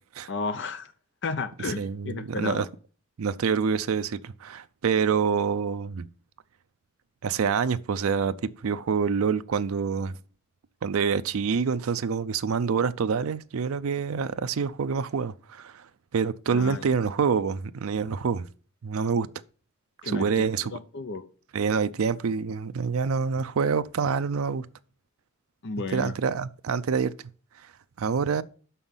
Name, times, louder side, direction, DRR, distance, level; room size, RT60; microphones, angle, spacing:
voice 1, 0.3-0.9 1.2-2.7 16.5-16.9 20.0-21.2 25.6-26.2, left 3 dB, 60° left, 0.7 m, -33 dB
voice 2, 1.8-2.6 3.2-6.1 7.2-10.2 10.8-15.8 16.1-18.5 18.8-19.3 20.0-20.7 21.5-24.7 25.9-27.1 28.0-28.4, right 6 dB, 85° right, 0.5 m, -26 dB
6.1 x 5.7 x 7.1 m
head